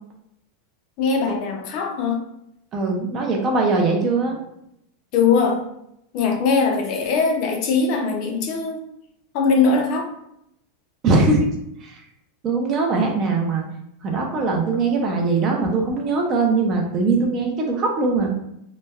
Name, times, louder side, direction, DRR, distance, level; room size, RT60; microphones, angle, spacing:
voice 1, 1.0-2.2 5.1-5.6 6.1-8.8 9.3-10.1, left 4 dB, 40° left, 3 dB, 0.4 m, -21 dB
voice 2, 2.7-4.4 11.0-11.5 11.8-12.0 12.4-13.6 14.0-18.4, right 3 dB, 25° right, 1 dB, 0.4 m, -21 dB
2.9 x 2.1 x 2.2 m, 0.79 s
supercardioid pair, 170°, 0 cm